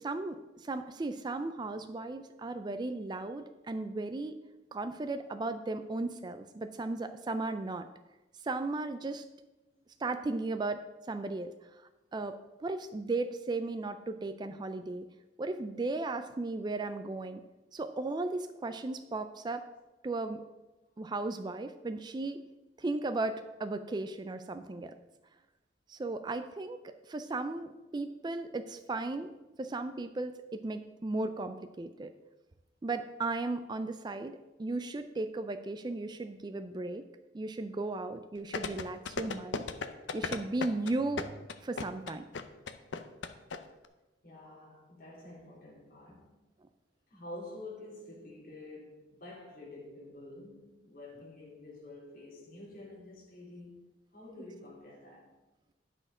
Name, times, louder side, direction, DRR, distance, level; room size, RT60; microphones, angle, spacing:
voice 1, 0.0-4.4 4.7-7.9 8.4-9.3 10.0-10.8 11.1-11.5 12.1-15.1 15.4-17.4 17.7-19.6 20.0-20.4 21.0-22.4 22.8-24.9 25.9-29.3 29.6-32.1 32.8-37.0 37.3-39.6 40.1-42.3 54.4-54.5, right 2 dB, 25° right, 0.4 m, -36 dB
sound 1, 38.5-43.6 43.8-43.9, left 4 dB, 80° left, 0.6 m, -35 dB
voice 2, 44.2-46.3 47.1-55.3, left 2 dB, 50° left, 3.4 m, -48 dB
10.0 x 6.4 x 4.9 m
head